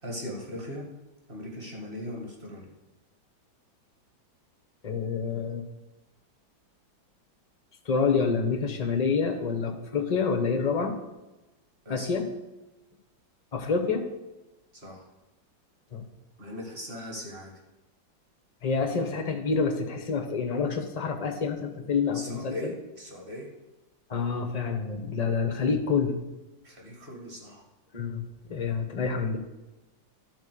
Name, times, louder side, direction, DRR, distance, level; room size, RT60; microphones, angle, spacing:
voice 1, 0.0-0.8 1.3-2.7 11.9-12.1 14.7-15.1 16.4-17.5 22.1-23.5 26.6-27.6, left 1 dB, 30° right, 0 dB, 2.0 m, -39 dB
voice 2, 4.8-5.6 7.9-11.0 11.9-12.3 13.5-14.0 15.9-16.1 18.6-22.7 24.1-26.2 27.9-29.4, left 5 dB, 50° left, 6 dB, 0.4 m, -27 dB
12.0 x 4.1 x 6.6 m, 1.0 s
omnidirectional pair, 2.1 m